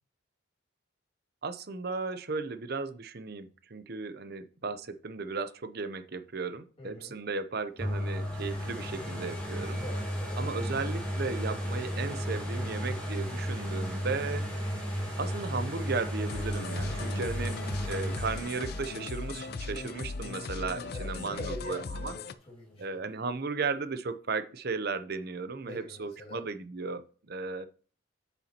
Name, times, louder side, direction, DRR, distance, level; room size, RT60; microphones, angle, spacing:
voice 1, 1.4-9.8 10.4-14.5 15.2-17.6 17.8-22.2 22.8-27.7, right 4 dB, 50° right, 11 dB, 0.7 m, -35 dB
voice 2, 6.8-7.1 9.8-10.4 16.9-17.2 20.9-23.0 25.6-26.4, left 1 dB, 25° left, -4 dB, 2.3 m, -44 dB
sound 1, 7.8-21.5 22.0-22.1, equal, 5° left, 2.8 m, -34 dB
sound 2, 16.3-22.3, left 4 dB, 50° left, 0.4 m, -38 dB
8.4 x 6.9 x 2.9 m, 0.39 s
head